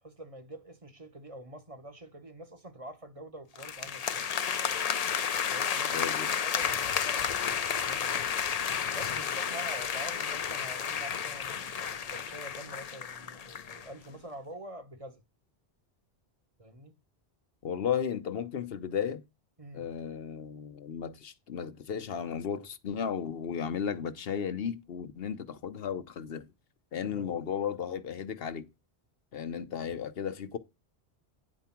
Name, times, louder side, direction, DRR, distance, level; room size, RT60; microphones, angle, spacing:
voice 1, 0.0-4.3 5.5-8.3 8.9-15.2 16.6-17.0 19.6-19.9 27.0-27.3, right 1 dB, 35° right, 1.1 m, -46 dB
sound 1, 3.6-13.9, left 7 dB, 45° left, 0.6 m, -32 dB
voice 2, 5.9-6.3 17.6-19.2 19.7-26.5 26.9-28.6 29.3-30.6, left 7 dB, 70° left, 1.0 m, -34 dB
9.8 x 4.7 x 5.8 m
omnidirectional pair, 1.1 m